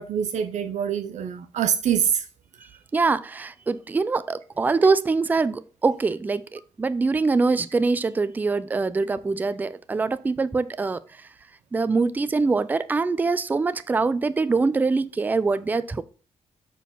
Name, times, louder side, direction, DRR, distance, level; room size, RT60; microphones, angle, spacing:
voice 1, 0.0-2.3, right 8 dB, 75° right, 0.6 m, -25 dB
voice 2, 2.9-11.0 11.7-16.0, right 4 dB, 15° right, 0.3 m, -23 dB
7.2 x 4.6 x 5.5 m
wide cardioid pair, 175°, 12 cm